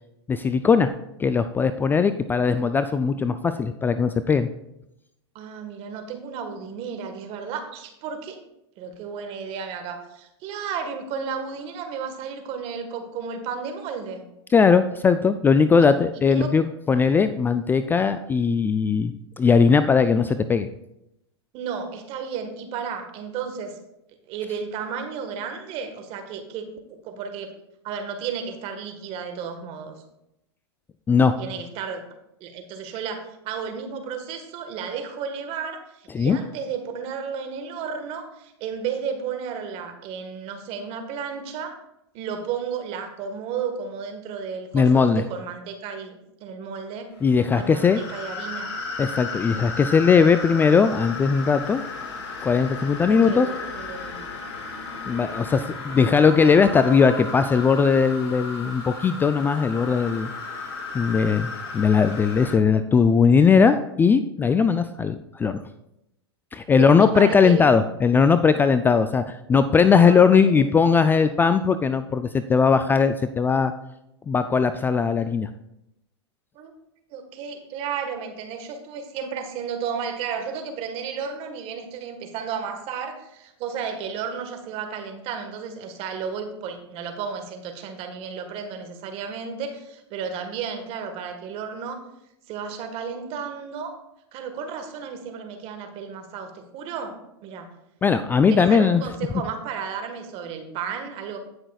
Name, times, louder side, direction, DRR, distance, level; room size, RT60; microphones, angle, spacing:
voice 1, 0.3-0.9 1.2-4.5 14.5-20.7 31.1-31.4 36.1-36.4 44.7-45.2 47.2-48.0 49.0-51.8 52.4-53.5 55.0-60.3 60.9-65.6 66.5-73.7 74.3-75.5 98.0-99.0, left 5 dB, 15° left, 11 dB, 0.3 m, -19 dB
voice 2, 5.3-8.4 8.8-14.2 15.8-15.9 16.3-16.5 21.5-23.8 24.3-27.5 27.8-30.0 31.4-32.0 32.4-41.8 42.1-47.1 47.5-48.7 53.1-54.3 66.8-67.7 69.7-70.7 76.5-76.7 77.1-92.0 92.5-94.0 94.3-97.2 97.4-97.7 98.5-101.4, right 6 dB, 45° right, 6 dB, 1.5 m, -33 dB
sound 1, 47.2-62.6, left 4 dB, 75° left, 3.1 m, -35 dB
17.0 x 6.1 x 2.4 m, 0.85 s
hypercardioid pair, 110°, 14 cm